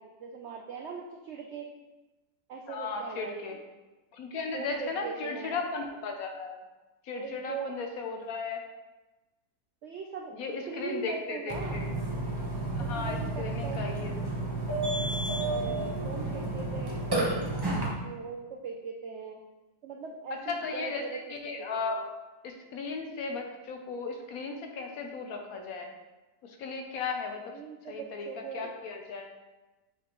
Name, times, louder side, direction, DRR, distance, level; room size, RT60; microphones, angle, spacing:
voice 1, 0.0-1.7 2.5-3.7 4.5-5.6 7.1-7.8 9.8-10.4 10.7-11.9 12.8-13.9 15.4-19.4 19.8-22.1 27.5-28.8, right 5 dB, 85° right, 2 dB, 0.6 m, -41 dB
voice 2, 2.7-3.6 4.1-6.6 7.0-8.6 10.3-11.9 12.7-14.1 16.2-16.3 20.5-21.0 21.3-22.0 22.4-25.9 26.4-27.5 27.9-28.3 28.5-29.3, left 4 dB, 65° left, 3 dB, 1.1 m, -36 dB
Burping eructation, 11.5-17.9, right 2 dB, 20° right, 0.7 m, -31 dB
7.0 x 4.9 x 3.0 m, 1.1 s
omnidirectional pair, 1.8 m